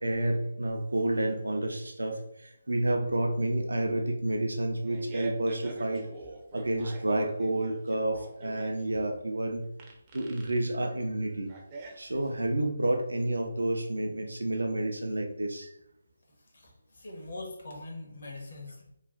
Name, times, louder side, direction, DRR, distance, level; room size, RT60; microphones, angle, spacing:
voice 1, 0.0-6.1 6.5-9.6 10.1-11.5 12.0-15.7, right 1 dB, 80° right, 3 dB, 0.6 m, -30 dB
Fart, 4.6-12.5, right 3 dB, 25° right, 0.6 m, -45 dB
voice 2, 16.4-18.9, left 2 dB, 60° left, -1 dB, 1.2 m, -43 dB
3.2 x 2.4 x 3.8 m, 0.76 s
figure-of-eight pair, 150°, 0 cm